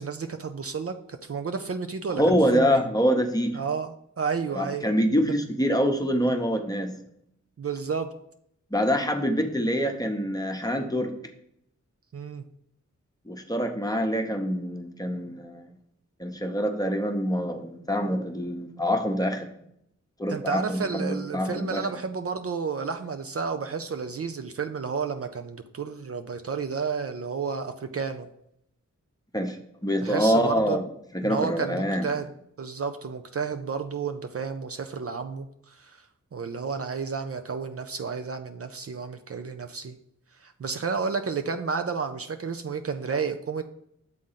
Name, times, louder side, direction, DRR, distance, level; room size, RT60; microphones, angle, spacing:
voice 1, 0.0-2.8 3.5-4.9 7.6-8.1 12.1-12.4 20.3-28.3 30.0-30.8 31.2-32.3 32.6-36.1 36.3-39.9 40.3-43.6, right 5 dB, 50° right, 7 dB, 0.5 m, -31 dB
voice 2, 2.2-3.6 4.5-6.9 8.7-11.1 13.3-15.8 16.2-19.5 20.2-21.9 29.3-30.9 31.1-32.1, equal, 10° left, 4 dB, 0.9 m, -25 dB
7.6 x 3.8 x 5.6 m, 0.73 s
wide cardioid pair, 105°, 30 cm